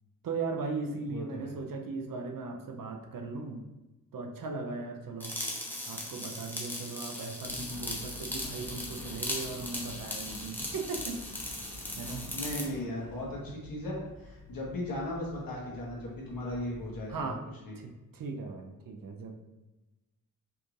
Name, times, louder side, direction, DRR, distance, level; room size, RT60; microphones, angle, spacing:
voice 1, 0.2-3.6 4.1-5.4 5.9-11.4 12.0-12.2 17.1-17.4 17.8-19.3, right 4 dB, 65° right, 3 dB, 0.6 m, -38 dB
voice 2, 1.1-1.5 5.3-5.5 12.3-17.3 17.6-17.7, left 1 dB, 65° left, -4 dB, 1.2 m, -37 dB
sound 1, 5.2-12.7, left 1 dB, 5° left, 0.5 m, -38 dB
Engine, 7.4-17.2, left 1 dB, 85° left, 1.2 m, -49 dB
4.7 x 2.5 x 3.1 m, 1.1 s
wide cardioid pair, 145°, 36 cm